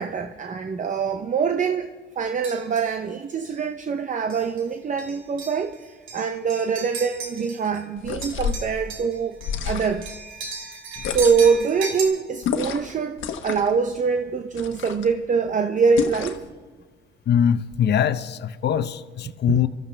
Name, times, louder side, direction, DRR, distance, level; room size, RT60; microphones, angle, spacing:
voice 1, 0.0-9.4 9.6-10.1 11.0-16.4 19.5-19.6, right 5 dB, 40° right, 7 dB, 0.7 m, -24 dB
sound 1, 2.4-2.9 3.5-3.6 4.3-4.6 5.0-7.8 8.1-12.0, right 4 dB, 80° right, 2.6 m, -36 dB
sound 2, 8.0-8.7 9.4-10.1 11.0-11.6 12.4-12.9 13.2-13.8 14.5-15.1 16.0-16.5, left 7 dB, 80° left, 1.1 m, -29 dB
voice 2, 17.3-19.7, left 8 dB, 60° left, 13 dB, 0.7 m, -22 dB
24.0 x 13.5 x 3.3 m, 1.4 s
cardioid pair, 90°, 20 cm